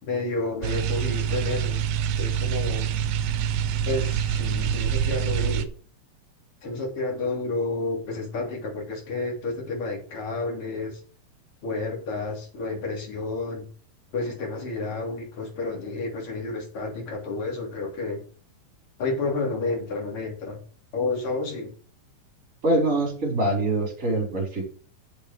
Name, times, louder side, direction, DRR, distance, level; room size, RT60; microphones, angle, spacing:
voice 1, 0.0-1.8 2.2-2.9 3.9-5.7 6.6-11.0 11.6-13.7 14.1-18.2 19.0-20.6 20.9-21.7, left 3 dB, 40° left, 0 dB, 3.7 m, -30 dB
sound 1, 0.6-5.7, right 9 dB, 75° right, 2.3 m, -26 dB
voice 2, 22.6-24.6, right 2 dB, 20° right, 0 dB, 4.1 m, -24 dB
7.2 x 7.0 x 6.3 m, 0.41 s
omnidirectional pair, 4.0 m